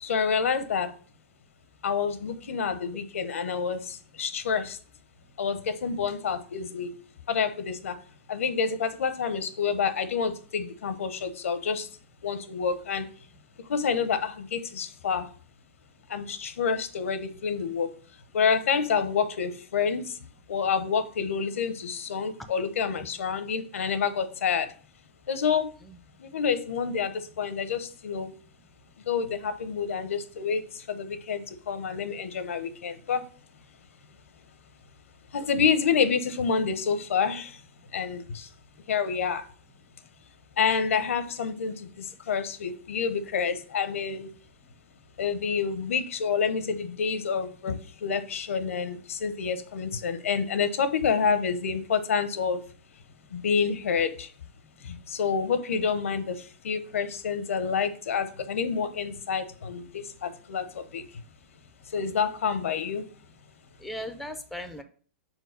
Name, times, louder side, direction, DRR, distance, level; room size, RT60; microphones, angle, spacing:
voice 1, 0.0-0.9 1.8-4.8 5.4-6.9 7.3-8.0 8.3-11.9 12.2-13.0 13.7-15.3 16.1-17.9 18.3-20.2 20.5-24.7 25.3-25.7 26.2-28.3 29.1-33.2 35.3-37.6 37.9-38.5 38.9-39.4 40.6-44.3 45.2-52.6 53.3-54.3 54.8-61.0 61.9-63.0, left 6 dB, 85° left, 0.8 m, -28 dB
voice 2, 25.8-26.3 28.3-28.4 37.8-37.9 53.2-53.3 54.6-54.7 55.7-55.9 63.8-64.8, equal, ahead, 0.4 m, -40 dB
4.5 x 4.4 x 5.1 m
hypercardioid pair, 145°, 7 cm